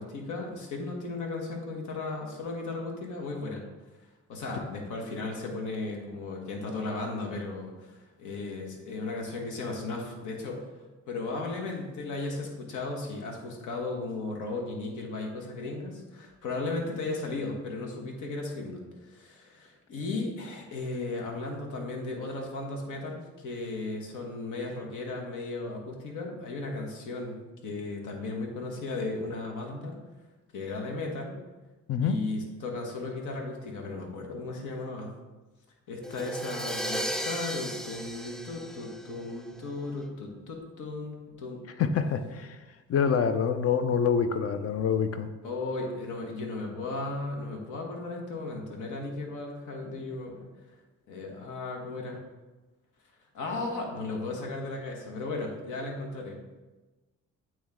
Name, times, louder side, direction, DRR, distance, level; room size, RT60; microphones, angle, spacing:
voice 1, 0.0-3.6 4.3-10.7 11.1-27.4 27.6-30.0 30.5-31.4 32.0-35.1 35.9-41.6 45.4-50.5 51.1-52.2 53.3-56.4, left 3 dB, 80° left, 1 dB, 1.3 m, -35 dB
Crash cymbal, 36.0-39.8, equal, ahead, 0.4 m, -35 dB
voice 2, 41.8-42.6 42.9-45.3, left 7 dB, 50° left, 10 dB, 0.5 m, -26 dB
8.6 x 3.1 x 3.6 m, 1.2 s
cardioid pair, 90°, 30 cm